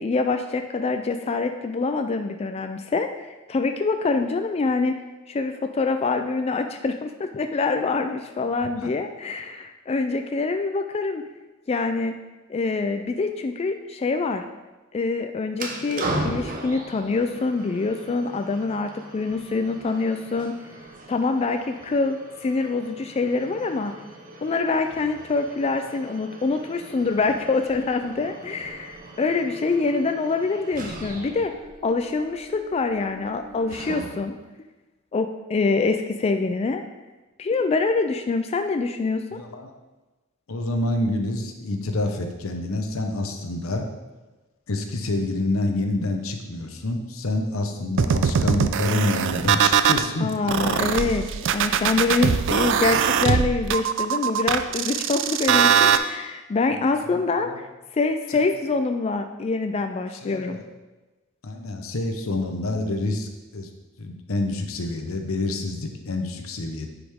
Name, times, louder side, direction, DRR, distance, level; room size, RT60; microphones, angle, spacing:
voice 1, 0.0-3.1 3.5-5.0 5.3-11.2 11.7-12.1 12.5-14.4 14.9-20.6 21.1-23.9 24.4-31.5 31.8-34.4 35.1-36.8 37.4-39.2 50.2-51.2 51.5-57.5 57.9-60.6, left 3 dB, 30° left, 6 dB, 0.3 m, -25 dB
sound 1, 15.5-34.4, right 2 dB, 40° right, 0.9 m, -38 dB
voice 2, 39.3-39.7 40.5-43.9 44.7-50.3 57.0-57.6 58.3-58.5 60.2-60.7 61.4-63.7 64.0-66.9, left 2 dB, 90° left, 5 dB, 0.9 m, -27 dB
sound 2, 48.0-50.1 50.5-56.0, right 7 dB, 60° right, 0.4 m, -21 dB
9.8 x 5.0 x 3.5 m, 1.1 s
head